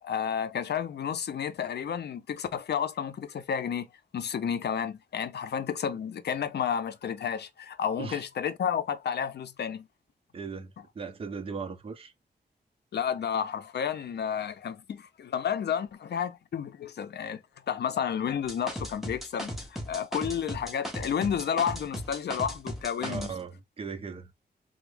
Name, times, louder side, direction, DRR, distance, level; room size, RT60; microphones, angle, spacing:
voice 1, 0.0-3.9 4.1-9.9 12.9-17.4 17.7-23.3, left 8 dB, 70° left, 0.5 m, -31 dB
voice 2, 10.3-12.1 23.0-24.3, right 5 dB, 35° right, 0.5 m, -38 dB
sound 1, 18.5-23.3, equal, ahead, 0.9 m, -36 dB
3.5 x 2.0 x 3.3 m
wide cardioid pair, 100°, 18 cm